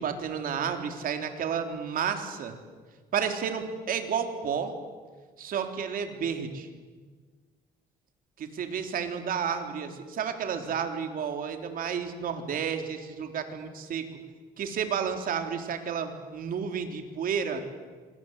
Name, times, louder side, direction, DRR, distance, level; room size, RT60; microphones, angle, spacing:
voice 1, 0.0-2.6 3.1-4.7 5.4-6.7 8.4-14.1 14.6-17.6, right 7 dB, 55° right, 6 dB, 3.7 m, -31 dB
26.5 x 25.5 x 8.2 m, 1.5 s
cardioid pair, 110°, 17 cm